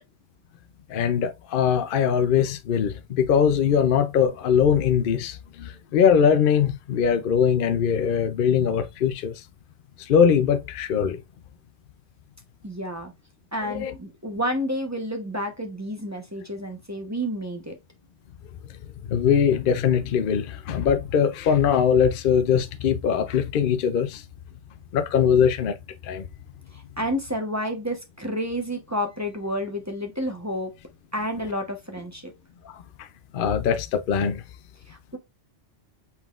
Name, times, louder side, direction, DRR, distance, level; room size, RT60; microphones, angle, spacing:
voice 1, 0.9-9.4 10.0-11.2 13.6-13.9 19.1-24.2 24.9-25.8 26.0-26.2 32.6-33.1 33.3-34.4, left 7 dB, 60° left, 0.6 m, -21 dB
voice 2, 12.6-13.1 13.5-17.8 26.7-30.7 31.1-32.3 34.9-35.2, equal, 15° right, 0.8 m, -30 dB
5.6 x 4.0 x 2.4 m
omnidirectional pair, 1.2 m